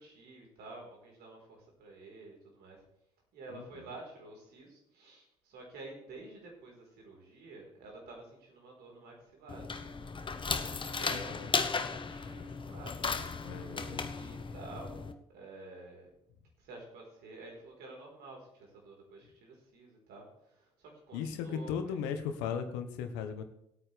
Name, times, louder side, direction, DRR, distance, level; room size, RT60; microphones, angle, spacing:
voice 1, 0.0-2.8 3.3-9.9 10.8-16.1 16.6-22.0, right 2 dB, 65° right, 0 dB, 4.4 m, -50 dB
voice 2, 3.5-3.9 11.1-11.5 13.4-14.1 21.1-23.4, left 7 dB, 70° left, 7 dB, 1.4 m, -37 dB
sound 1, 9.5-15.1, left 5 dB, 30° left, 1.0 m, -36 dB
19.5 x 8.9 x 3.5 m, 0.80 s
hypercardioid pair, 55°, 18 cm